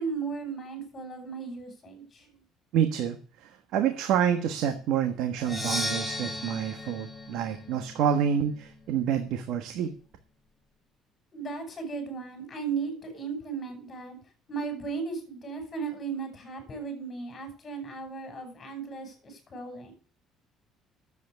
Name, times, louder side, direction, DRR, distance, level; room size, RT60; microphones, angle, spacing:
voice 1, 0.0-2.3 11.3-14.2 14.5-19.9, right 5 dB, 35° left, 6 dB, 6.5 m, -36 dB
voice 2, 2.7-9.9, right 8 dB, 75° right, 7 dB, 1.5 m, -28 dB
Percussion, 5.4-9.2, left 1 dB, ahead, 3.0 m, -36 dB
10.5 x 8.3 x 8.2 m, 0.42 s
cardioid pair, 110°, 0 cm